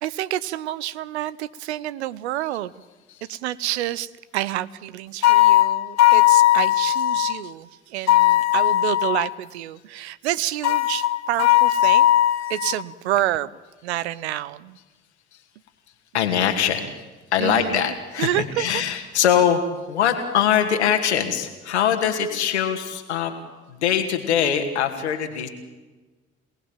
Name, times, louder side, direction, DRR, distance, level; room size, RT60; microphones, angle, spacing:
voice 1, 0.0-2.7 3.3-12.1 12.5-13.5 13.8-14.8 17.4-18.8, right 13 dB, 75° right, 18 dB, 0.8 m, -28 dB
sound 1, 5.2-7.4 8.1-9.3 10.6-12.8, left 14 dB, 55° left, 1.2 m, -18 dB
voice 2, 16.1-16.9 17.3-23.3 23.7-25.5, left 8 dB, 80° left, 6 dB, 2.5 m, -22 dB
27.5 x 19.0 x 9.0 m, 1.2 s
figure-of-eight pair, 50°, 33 cm